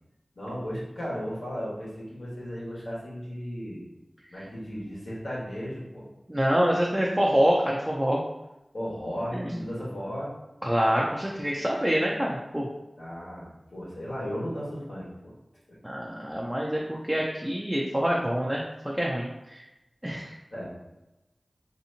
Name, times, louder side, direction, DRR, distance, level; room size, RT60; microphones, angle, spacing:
voice 1, 0.3-3.8 4.3-6.1 8.7-10.3 13.0-15.3 15.7-15.8 20.5-20.7, equal, 75° left, -7 dB, 1.3 m, -35 dB
voice 2, 6.3-8.2 9.3-9.6 10.6-12.7 15.8-19.6 20.0-20.3, equal, 10° right, -3 dB, 0.4 m, -26 dB
3.3 x 2.8 x 2.7 m, 0.95 s
wide cardioid pair, 60°, 0 cm